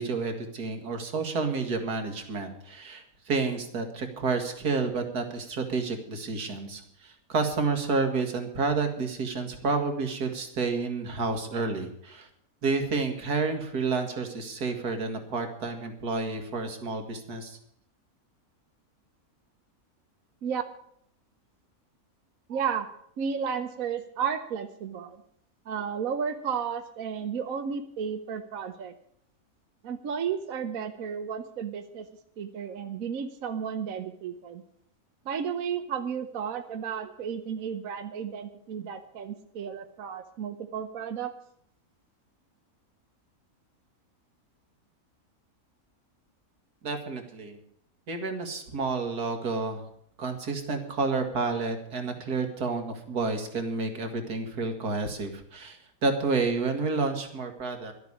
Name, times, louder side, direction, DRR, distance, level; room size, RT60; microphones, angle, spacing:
voice 1, 0.0-12.3 12.6-17.6 46.8-47.6 48.1-49.8 50.2-57.9, right 4 dB, 90° right, 5 dB, 2.4 m, -30 dB
voice 2, 22.5-22.9 23.2-25.2 25.7-28.9 29.8-32.1 32.4-34.6 35.2-41.3, right 7 dB, 65° right, 8 dB, 1.3 m, -33 dB
12.0 x 8.1 x 9.7 m, 0.69 s
omnidirectional pair, 1.6 m